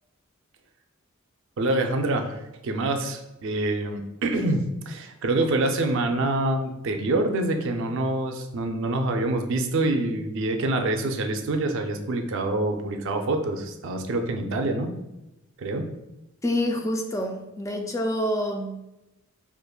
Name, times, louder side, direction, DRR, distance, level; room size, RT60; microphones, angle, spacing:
voice 1, 1.6-14.9 15.6-15.8, right 2 dB, 65° right, 5 dB, 0.4 m, -26 dB
voice 2, 16.4-18.8, left 1 dB, 15° left, 3 dB, 0.3 m, -27 dB
5.0 x 2.5 x 2.2 m, 0.93 s
head